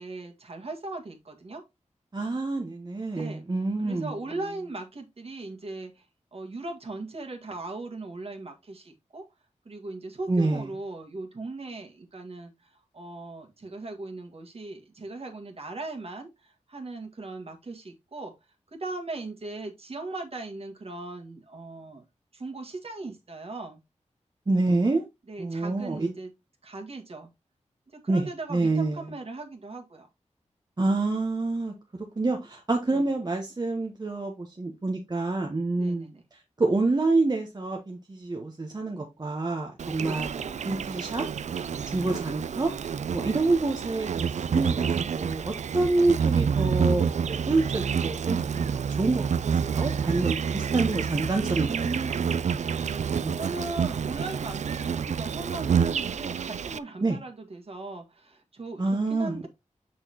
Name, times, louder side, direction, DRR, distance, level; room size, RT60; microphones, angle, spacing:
voice 1, 0.0-1.6 3.1-3.4 3.8-6.1 6.3-9.3 9.7-18.3 18.7-22.0 22.3-23.8 25.3-26.3 26.6-27.3 27.9-30.1 32.9-33.0 35.8-36.2 40.0-40.3 42.0-42.3 51.6-52.3 53.1-59.5, right 2 dB, 50° right, 1.7 m, -38 dB
voice 2, 2.1-4.2 10.3-10.7 24.5-25.0 25.4-26.1 28.1-29.1 30.8-41.2 41.9-42.7 43.1-49.3 49.6-52.0 53.2-53.4 57.0-57.2 58.8-59.5, right 2 dB, 35° right, 1.1 m, -27 dB
Insect, 39.8-56.8, right 7 dB, 70° right, 0.4 m, -28 dB
6.5 x 6.1 x 2.9 m
wide cardioid pair, 95°, 12 cm